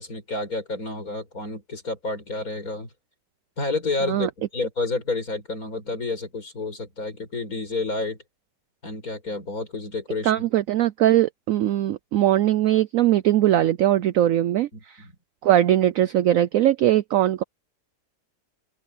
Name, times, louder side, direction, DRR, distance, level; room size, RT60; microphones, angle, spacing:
voice 1, 0.0-2.9 3.6-8.2 8.8-10.5 14.7-15.1, left 3 dB, 50° left, 5.8 m, -30 dB
voice 2, 10.2-15.0 15.4-17.4, right 12 dB, 70° right, 0.8 m, -20 dB
open air
omnidirectional pair, 1.9 m